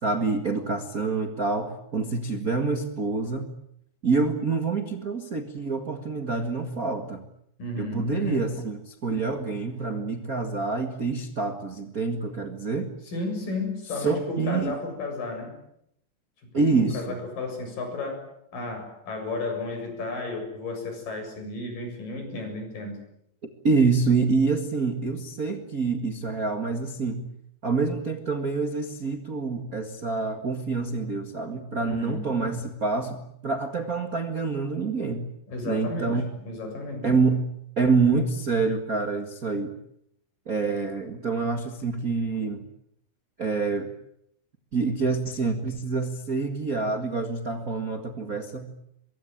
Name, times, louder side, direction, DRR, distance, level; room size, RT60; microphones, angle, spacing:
voice 1, 0.0-3.5 4.0-7.2 7.8-12.9 14.0-14.7 16.5-17.2 23.6-27.2 27.6-35.3 35.6-36.2 37.0-37.5 37.8-39.7 40.4-42.7 43.4-43.9 44.7-48.7, right 4 dB, 60° right, 5 dB, 0.8 m, -26 dB
voice 2, 7.6-8.5 13.1-15.6 16.4-16.7 16.9-23.0 31.8-32.2 35.5-37.1, left 2 dB, 50° left, 5 dB, 8.8 m, -33 dB
24.0 x 23.5 x 9.0 m, 0.74 s
omnidirectional pair, 5.1 m